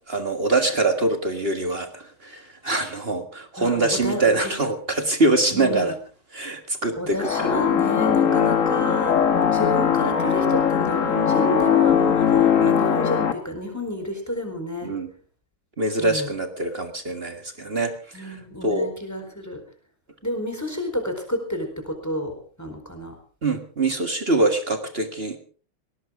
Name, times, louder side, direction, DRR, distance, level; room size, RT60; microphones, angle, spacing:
voice 1, 0.1-6.0 6.3-7.5 8.2-8.5 12.5-12.8 14.8-15.1 15.8-18.9 23.4-25.4, right 2 dB, 30° right, 7 dB, 1.7 m, -24 dB
voice 2, 3.6-4.5 5.5-5.9 7.0-14.9 16.0-16.3 18.1-19.6 20.2-23.2, left 1 dB, 5° left, 5 dB, 4.2 m, -30 dB
sound 1, 7.2-13.3, left 8 dB, 40° left, 1.6 m, -20 dB
20.0 x 17.5 x 3.7 m, 0.40 s
omnidirectional pair, 2.3 m